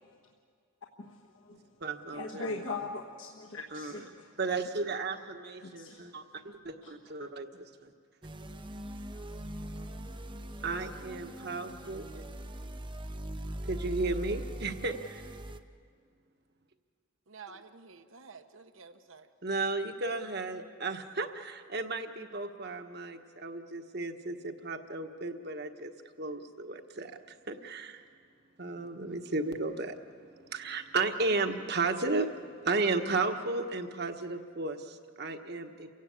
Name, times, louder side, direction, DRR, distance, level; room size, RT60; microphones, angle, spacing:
voice 1, 1.0-1.7 2.1-4.3 5.6-6.1 6.8-6.9 9.1-10.1, left 3 dB, 65° left, 0 dB, 1.4 m, -41 dB
voice 2, 1.8-2.8 3.7-4.0 4.4-7.9 10.6-12.2 13.7-15.2 19.4-25.9 26.2-27.2 27.5-28.0 28.6-35.9, right 3 dB, 50° right, 6 dB, 1.3 m, -34 dB
sound 1, 8.2-15.6, right 1 dB, 25° right, 0.7 m, -41 dB
voice 3, 17.3-19.3, right 5 dB, 70° right, 9 dB, 1.1 m, -51 dB
29.0 x 16.5 x 8.6 m, 2.1 s
head